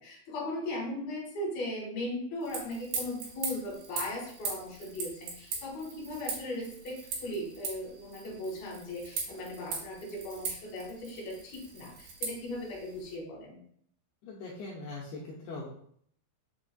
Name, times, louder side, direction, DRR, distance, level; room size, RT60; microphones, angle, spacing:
voice 1, 0.0-13.5, left 1 dB, 65° left, -3 dB, 2.8 m, -38 dB
sound 1, 2.4-13.2, right 5 dB, 75° right, 3.1 m, -40 dB
voice 2, 14.2-15.7, left 3 dB, 85° left, -4 dB, 2.2 m, -41 dB
6.8 x 2.4 x 2.2 m, 0.64 s
omnidirectional pair, 5.2 m